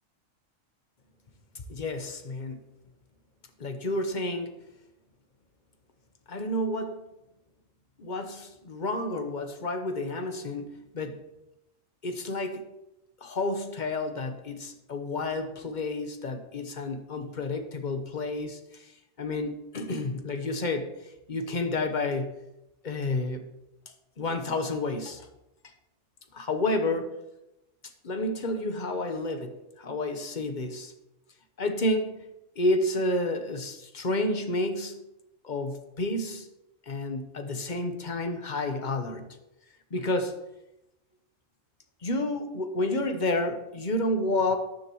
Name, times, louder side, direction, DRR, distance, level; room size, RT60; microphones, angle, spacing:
voice 1, 1.7-2.6 3.6-4.5 6.3-7.1 8.0-11.2 12.0-12.6 13.2-18.9 19.2-20.9 21.3-22.3 22.8-23.4 24.2-25.3 26.3-27.1 28.0-30.9 31.6-32.2 32.6-35.0 35.4-36.5 36.9-39.3 39.9-40.3 42.0-44.6, left 2 dB, 40° left, 8 dB, 1.0 m, -30 dB
13.0 x 10.5 x 3.0 m, 0.93 s
omnidirectional pair, 1.3 m